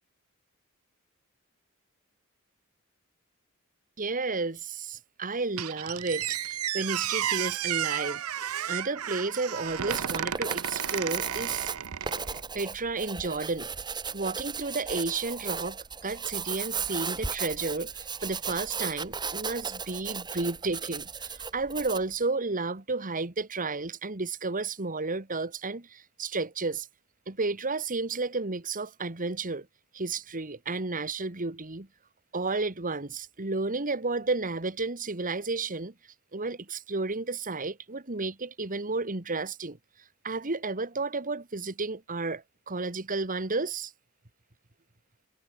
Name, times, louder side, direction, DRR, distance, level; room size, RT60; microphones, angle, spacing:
voice 1, 4.0-11.7 12.5-26.9 27.3-29.7 29.9-31.9 32.3-35.9 36.3-39.8 40.2-43.9, right 3 dB, 40° right, 2.0 m, -32 dB
Squeak, 5.6-12.4, right 10 dB, 85° right, 0.8 m, -32 dB
Writing, 9.7-22.1, right 6 dB, 20° right, 1.2 m, -36 dB
head